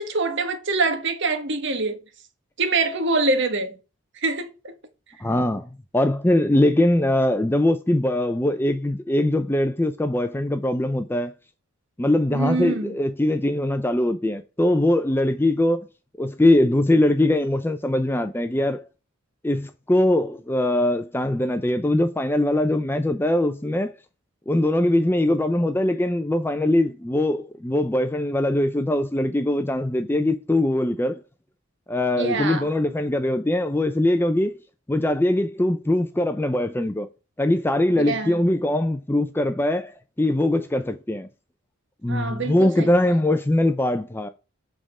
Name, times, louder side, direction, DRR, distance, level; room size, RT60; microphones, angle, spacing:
voice 1, 0.0-2.0 2.6-3.8 4.2-4.8 12.3-12.9 32.2-32.7 38.0-38.4 42.1-42.9, right 3 dB, 55° right, 1.2 m, -25 dB
voice 2, 5.2-11.3 12.0-15.9 16.2-18.9 19.4-23.9 24.5-31.2 31.9-34.5 34.9-37.1 37.4-39.9 40.2-41.3 42.0-44.3, left 1 dB, 10° left, 0.4 m, -22 dB
7.6 x 3.7 x 4.8 m
head